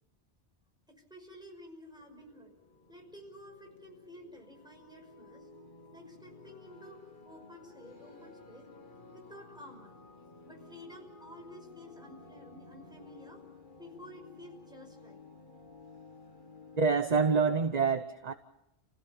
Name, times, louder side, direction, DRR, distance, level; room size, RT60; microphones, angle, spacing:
voice 1, 1.1-2.5 2.9-5.5 5.9-8.7 9.1-9.9 10.4-13.4 13.8-15.2, left 1 dB, 5° right, 1 dB, 5.8 m, -51 dB
sound 1, 2.0-17.7, left 3 dB, 50° left, 1.6 m, -54 dB
voice 2, 16.8-18.3, right 5 dB, 40° right, 9 dB, 1.0 m, -26 dB
29.5 x 16.5 x 7.3 m, 0.86 s
omnidirectional pair, 1.1 m